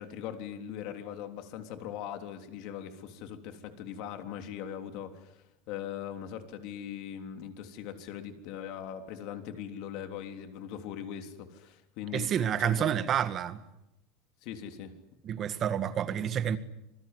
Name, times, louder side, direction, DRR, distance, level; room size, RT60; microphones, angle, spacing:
voice 1, 0.0-12.3 12.6-12.9 14.4-14.9, left 9 dB, 55° left, 3.4 m, -40 dB
voice 2, 12.1-13.6 15.2-16.6, right 9 dB, 30° right, 1.8 m, -29 dB
27.0 x 21.0 x 9.7 m
supercardioid pair, 160°, 0 cm